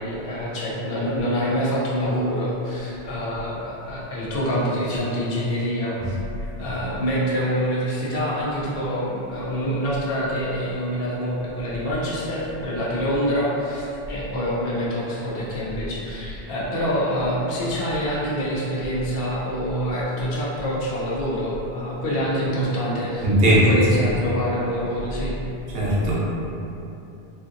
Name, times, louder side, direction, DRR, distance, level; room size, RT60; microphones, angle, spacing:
voice 1, 0.0-25.4, equal, 70° left, -6 dB, 0.8 m, -26 dB
voice 2, 23.2-23.8 25.7-26.1, equal, 70° right, -7 dB, 0.9 m, -18 dB
2.6 x 2.4 x 2.5 m, 2.8 s
omnidirectional pair, 1.0 m